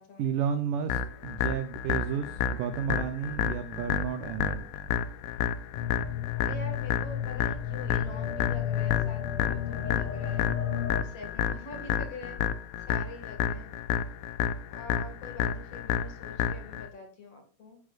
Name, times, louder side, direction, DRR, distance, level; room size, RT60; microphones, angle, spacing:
voice 1, 0.2-4.7, right 8 dB, 75° right, 9 dB, 1.9 m, -32 dB
sound 1, 0.9-16.9, left 8 dB, 85° left, 3.0 m, -31 dB
voice 2, 1.9-2.4 6.4-10.5 11.0-12.4 12.9-13.7 14.7-17.8, left 3 dB, 45° left, 4 dB, 2.7 m, -45 dB
sound 2, 5.7-11.0, left 10 dB, 65° left, 3.0 m, -32 dB
15.5 x 10.0 x 2.5 m, 0.40 s
omnidirectional pair, 4.8 m